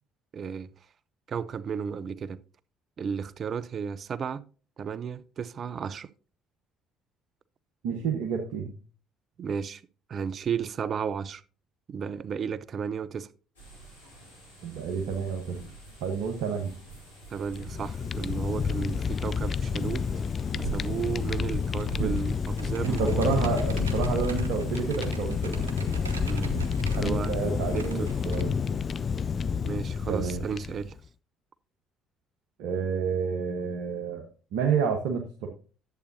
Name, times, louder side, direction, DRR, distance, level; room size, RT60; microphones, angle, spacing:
voice 1, 0.3-0.7 1.3-2.4 3.0-4.4 4.8-6.1 9.4-9.8 10.1-11.4 11.9-13.3 17.3-20.1 20.6-23.3 26.3-27.3 27.7-28.1 29.6-31.0, right 7 dB, 45° right, 0.5 m, -33 dB
voice 2, 7.8-8.7 14.6-15.6 16.0-16.7 22.0-22.1 22.8-25.8 26.5-28.5 30.1-30.4 32.6-34.3 34.5-35.5, right 6 dB, 70° right, 1.1 m, -29 dB
sound 1, 13.6-28.3, right 5 dB, 90° left, 3.1 m, -45 dB
Fire, 17.4-31.0, left 6 dB, 40° left, 0.4 m, -30 dB
Computer keyboard, 21.7-28.4, left 1 dB, 90° right, 0.9 m, -38 dB
10.5 x 8.2 x 2.7 m
hypercardioid pair, 55°, 0 cm